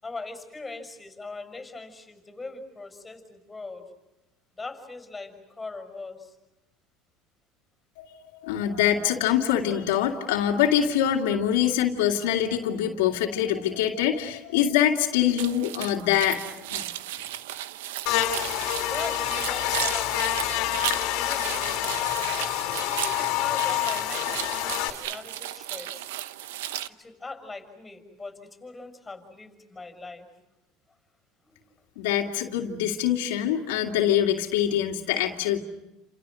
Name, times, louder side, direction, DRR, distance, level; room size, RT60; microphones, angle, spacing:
voice 1, 0.0-3.9 4.5-6.3 18.8-20.8 21.1-21.8 23.0-26.1 26.9-30.3 31.5-31.6, left 3 dB, 10° left, 6 dB, 6.3 m, -41 dB
voice 2, 8.0-16.4 16.7-16.9 32.0-35.6, left 10 dB, 85° left, 0 dB, 2.5 m, -24 dB
sound 1, 15.4-26.9, right 13 dB, 85° right, 0.9 m, -35 dB
Buzz, 18.1-24.9, left 14 dB, 70° left, 2.6 m, -27 dB
29.5 x 27.5 x 6.4 m, 0.95 s
supercardioid pair, 115°, 0 cm